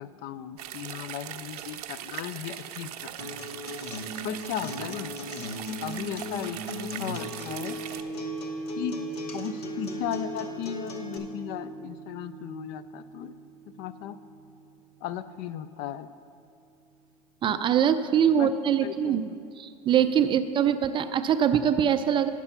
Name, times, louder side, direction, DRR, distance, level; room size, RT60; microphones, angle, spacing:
voice 1, 0.0-3.3 4.2-5.2 5.8-7.8 8.8-9.0 9.3-13.3 13.8-14.2 15.0-16.1 18.4-18.5 18.8-19.4, left 10 dB, 55° left, 14 dB, 0.4 m, -36 dB
sound 1, 0.6-8.0, right 11 dB, 80° right, 0.5 m, -40 dB
Acoustic guitar, 3.2-11.2, left 1 dB, 75° left, 1.1 m, -38 dB
sound 2, 7.5-15.9 16.4-16.5, right 3 dB, 30° left, 1.6 m, -40 dB
voice 2, 17.4-19.3 19.6-22.3, right 9 dB, 25° right, 10 dB, 0.3 m, -23 dB
9.6 x 6.0 x 5.6 m, 2.4 s
hypercardioid pair, 110°, 19 cm